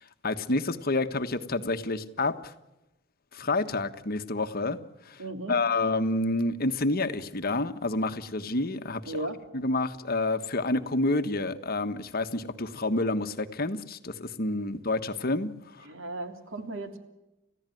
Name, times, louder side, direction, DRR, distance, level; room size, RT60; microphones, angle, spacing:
voice 1, 0.0-2.5 3.3-4.8 5.0-5.2 5.5-9.3 9.5-15.5, left 2 dB, 50° left, 9 dB, 1.4 m, -29 dB
voice 2, 5.2-5.6 9.1-9.4 15.8-17.0, right 1 dB, 90° right, 7 dB, 3.2 m, -35 dB
30.0 x 15.0 x 9.3 m, 1.0 s
head